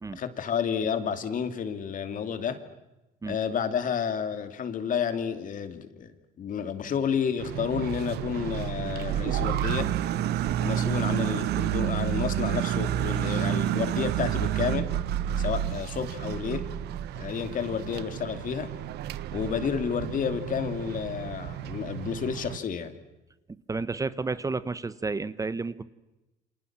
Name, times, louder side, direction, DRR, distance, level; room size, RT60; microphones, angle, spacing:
voice 1, 0.2-2.6 3.3-6.1 6.4-9.9 10.6-14.9 15.4-16.6 17.2-18.7 19.3-22.9, left 7 dB, 50° left, 9 dB, 2.7 m, -30 dB
sound 1, 7.4-22.6, right 11 dB, 75° right, 1.3 m, -30 dB
voice 2, 23.7-25.8, right 3 dB, 20° right, 15 dB, 1.0 m, -31 dB
29.0 x 26.0 x 7.5 m, 0.99 s
cardioid pair, 110°, 17 cm